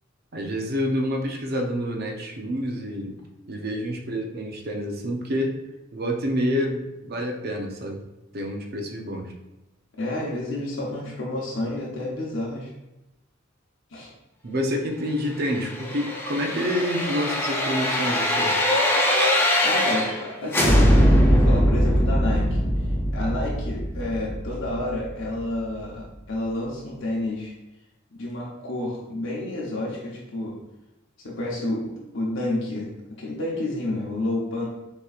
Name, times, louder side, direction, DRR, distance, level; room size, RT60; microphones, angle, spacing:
voice 1, 0.3-3.2 3.5-5.6 5.9-8.1 8.3-9.3 14.4-18.5, equal, 50° right, 2 dB, 0.7 m, -28 dB
voice 2, 10.0-12.7 13.9-14.1 19.6-22.6 23.1-27.5 28.1-30.6 31.2-32.9 33.2-34.7, left 1 dB, 70° left, -3 dB, 0.8 m, -30 dB
sound 1, 15.5-20.2 20.5-25.4 25.7-25.8, equal, 10° left, 0.5 m, -21 dB
6.6 x 3.0 x 2.4 m, 0.96 s
head